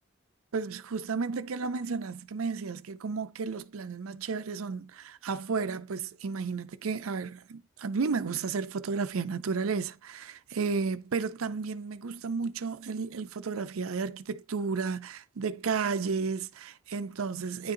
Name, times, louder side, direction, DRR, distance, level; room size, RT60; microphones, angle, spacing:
voice 1, 0.5-17.7, right 5 dB, 85° right, 0.5 m, -33 dB
10.0 x 3.8 x 2.7 m
head